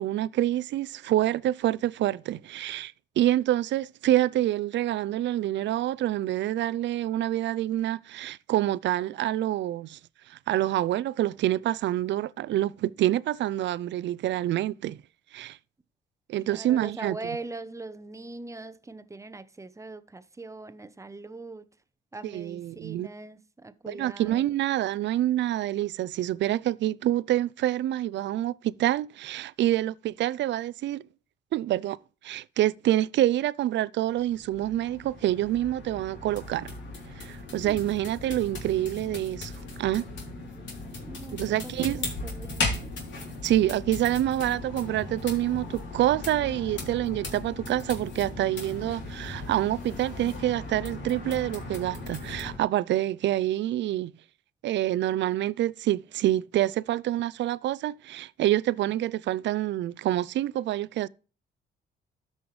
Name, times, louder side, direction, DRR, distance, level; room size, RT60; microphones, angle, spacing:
voice 1, 0.0-10.0 10.3-15.0 15.3-15.6 16.3-17.2 22.2-23.1 23.9-31.0 31.5-32.0 32.2-36.7 37.2-39.5 39.8-40.1 41.3-42.1 43.4-54.1 54.6-61.1, right 13 dB, 65° right, 0.4 m, -27 dB
voice 2, 16.5-21.7 22.1-24.5 37.6-37.8 41.0-43.0, right 3 dB, 15° right, 0.7 m, -41 dB
sound 1, 34.1-52.6, left 2 dB, 65° left, 3.3 m, -37 dB
13.0 x 5.5 x 3.2 m
cardioid pair, 90°, 20 cm